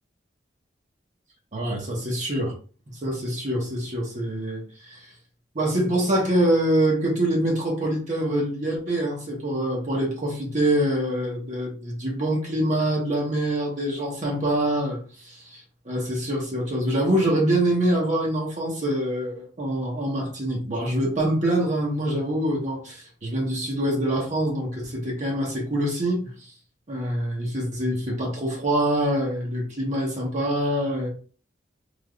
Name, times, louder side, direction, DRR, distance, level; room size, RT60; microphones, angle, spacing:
voice 1, 1.5-2.5 3.0-5.1 5.5-15.0 15.2-26.3 26.9-31.1, right 1 dB, 40° right, -1 dB, 0.9 m, -25 dB
3.3 x 2.9 x 2.4 m, 0.39 s
head